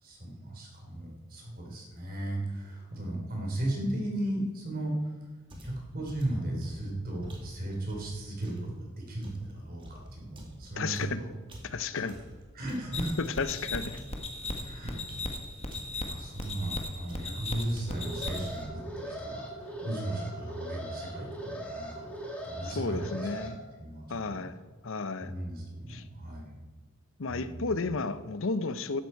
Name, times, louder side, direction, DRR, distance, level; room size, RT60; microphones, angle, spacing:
voice 1, 0.0-5.1 5.6-8.5 8.8-11.3 11.9-12.1 12.5-13.1 14.6-15.0 15.9-24.0 24.3-24.5 25.2-26.6 27.3-28.0, right 1 dB, 45° right, 3.8 m, -36 dB
sound 1, 5.5-8.7 9.2-13.6 13.9-16.1 16.4-16.8 17.1-17.4 17.7-18.1 18.4-18.8, equal, 25° right, 2.4 m, -47 dB
voice 2, 10.8-11.2 11.7-12.2 13.4-14.0 22.6-23.6 24.1-24.6 24.8-25.3 25.9-26.0 27.2-29.0, left 4 dB, 65° left, 0.7 m, -33 dB
sound 2, 12.9-18.6, left 2 dB, 30° left, 1.4 m, -37 dB
Alarm, 17.8-23.5, right 1 dB, 5° left, 2.2 m, -40 dB
14.5 x 12.0 x 4.6 m
head